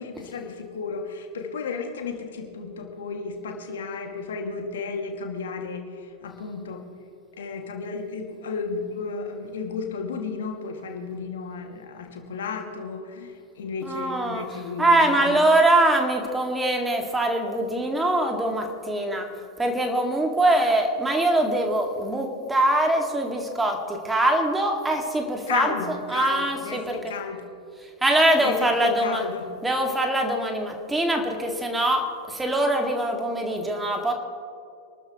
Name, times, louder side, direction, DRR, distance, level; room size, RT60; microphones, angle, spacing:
voice 1, 0.0-5.8 6.2-6.8 7.4-15.4 25.5-27.4 28.4-29.5, left 5 dB, 60° left, 3 dB, 2.1 m, -33 dB
voice 2, 13.8-19.3 19.6-27.1 28.0-29.3 29.6-34.1, right 1 dB, 10° right, 3 dB, 2.1 m, -23 dB
26.5 x 13.5 x 3.1 m, 2.4 s
figure-of-eight pair, 90°, 0 cm